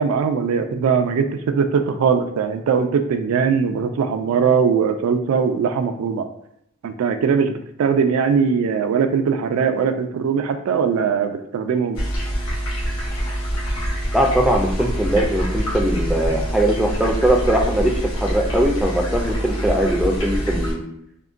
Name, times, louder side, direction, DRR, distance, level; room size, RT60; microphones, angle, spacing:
voice 1, 0.0-6.2 6.8-12.0, right 6 dB, 85° right, 12 dB, 0.3 m, -20 dB
sound 1, 11.9-20.7, equal, 70° left, 1.1 m, -25 dB
voice 2, 14.1-20.8, right 1 dB, ahead, 0 dB, 0.3 m, -20 dB
3.6 x 2.1 x 2.4 m, 0.77 s
head